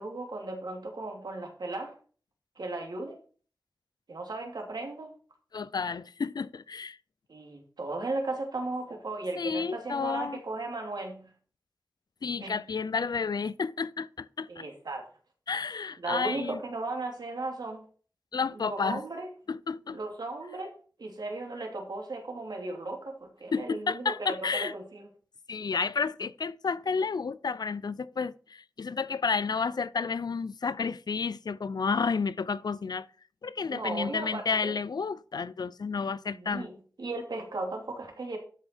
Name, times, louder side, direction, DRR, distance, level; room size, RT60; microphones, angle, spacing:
voice 1, 0.0-1.9 2.6-3.2 4.1-5.1 7.3-11.3 12.4-12.6 14.5-15.0 16.0-17.8 18.5-19.3 19.9-20.7 21.0-25.1 33.7-34.7 36.3-36.7 37.0-38.4, right 2 dB, 90° right, 2.5 m, -36 dB
voice 2, 5.5-7.0 9.4-10.4 12.2-14.6 15.5-16.6 18.3-19.0 19.5-20.0 23.5-24.7 25.5-33.1 33.4-36.7, left 5 dB, 80° left, 0.4 m, -31 dB
12.5 x 5.6 x 4.4 m
wide cardioid pair, 70°, 7 cm